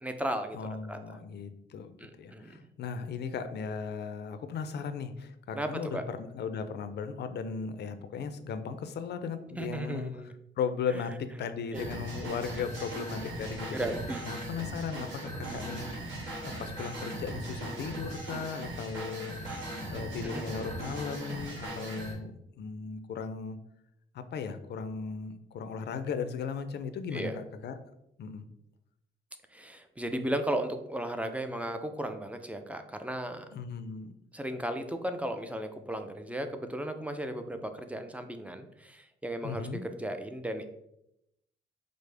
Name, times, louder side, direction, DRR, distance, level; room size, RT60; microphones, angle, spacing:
voice 1, 0.0-0.6 0.9-1.2 2.0-2.7 5.5-6.0 9.6-10.3 11.7-11.9 13.7-14.3 20.3-20.4 27.1-27.3 29.5-33.5 34.3-40.6, right 1 dB, 5° right, 7 dB, 0.3 m, -35 dB
voice 2, 0.5-10.1 10.6-13.9 14.2-16.2 16.4-19.4 19.9-22.3 22.6-23.6 24.1-27.8 28.2-28.5 33.5-34.1 39.4-39.8, left 6 dB, 60° left, 9 dB, 0.4 m, -37 dB
sound 1, 11.7-22.1, right 1 dB, 75° right, 1.3 m, -39 dB
4.9 x 2.0 x 3.3 m, 0.82 s
cardioid pair, 95°, 20 cm